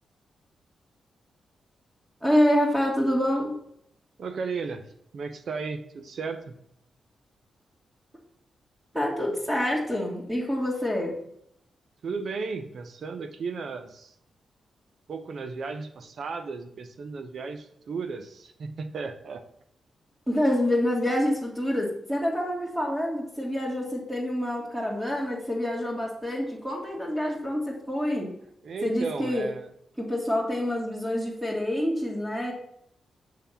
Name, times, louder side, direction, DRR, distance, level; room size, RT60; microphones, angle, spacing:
voice 1, 2.2-3.6 8.9-11.2 20.3-28.3 28.8-29.5 30.0-32.5, left 1 dB, 10° right, -5 dB, 2.0 m, -27 dB
voice 2, 4.2-4.8 5.1-6.6 12.0-14.1 15.1-19.4 28.6-29.7, right 4 dB, 65° right, 7 dB, 0.8 m, -34 dB
6.7 x 3.4 x 5.7 m, 0.73 s
cardioid pair, 60°, 0 cm